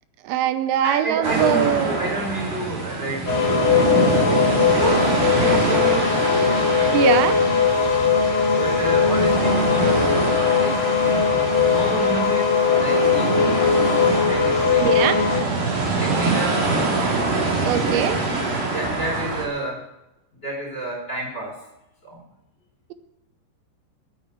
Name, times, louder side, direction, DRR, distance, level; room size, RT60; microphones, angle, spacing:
voice 1, 0.3-1.9 6.9-7.4 14.8-15.2 17.6-18.2, right 11 dB, 85° right, 11 dB, 3.0 m, -21 dB
voice 2, 0.8-6.2 6.7-7.3 8.4-13.7 14.2-15.2 16.0-17.0 17.7-19.8 20.4-21.6 22.0-22.2, right 1 dB, 15° left, -1 dB, 4.1 m, -30 dB
sound 1, 1.2-19.5, right 3 dB, 50° right, 4.2 m, -25 dB
sound 2, 3.3-15.4, left 6 dB, 40° left, 2.2 m, -20 dB
11.5 x 9.7 x 8.9 m, 0.91 s
omnidirectional pair, 5.1 m